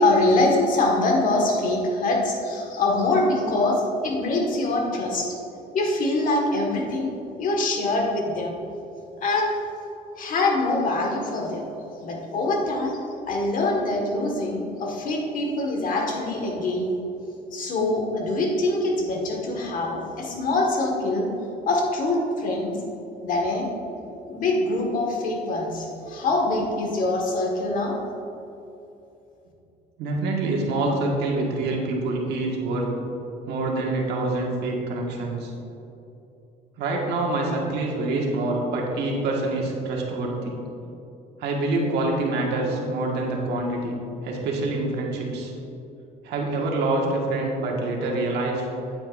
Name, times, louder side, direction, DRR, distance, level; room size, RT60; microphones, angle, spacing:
voice 1, 0.0-5.4 5.7-8.6 9.2-9.6 10.1-11.7 12.0-16.9 17.5-21.3 21.6-22.8 23.2-23.7 24.3-28.0, left 2 dB, 50° left, 0 dB, 1.7 m, -24 dB
voice 2, 30.0-32.9 33.5-35.5 36.8-40.6 41.4-43.9 44.2-45.5 46.2-48.6, right 2 dB, 80° right, -1 dB, 1.6 m, -26 dB
8.9 x 8.9 x 2.6 m, 2.8 s
cardioid pair, 110°, 17 cm